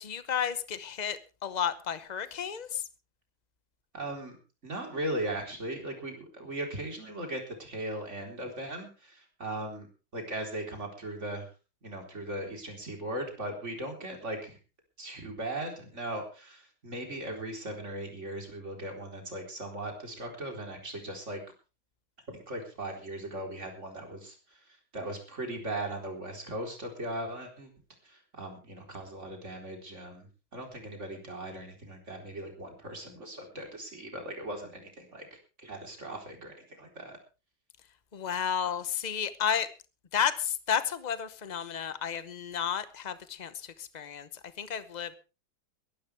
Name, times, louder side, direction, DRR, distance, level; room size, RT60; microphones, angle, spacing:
voice 1, 0.0-2.8 38.1-39.7 40.1-43.5 43.8-44.3 44.6-45.2, left 8 dB, 75° left, 13 dB, 0.4 m, -32 dB
voice 2, 3.9-4.4 4.6-9.9 10.1-11.5 11.8-14.6 15.0-21.4 22.3-27.7 28.0-37.2, right 1 dB, 35° right, 2 dB, 4.3 m, -38 dB
22.5 x 12.0 x 3.4 m, 0.32 s
omnidirectional pair, 2.2 m